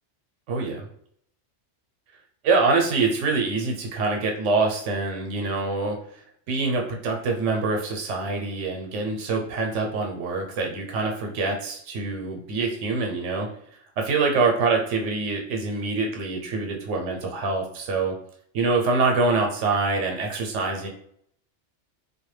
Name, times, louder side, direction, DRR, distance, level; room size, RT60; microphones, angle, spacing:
voice 1, 0.5-0.9 2.4-6.0 6.5-13.5 14.0-18.2 18.5-20.9, right 3 dB, 85° right, 2 dB, 0.9 m, -25 dB
2.2 x 2.1 x 3.1 m, 0.66 s
omnidirectional pair, 1.2 m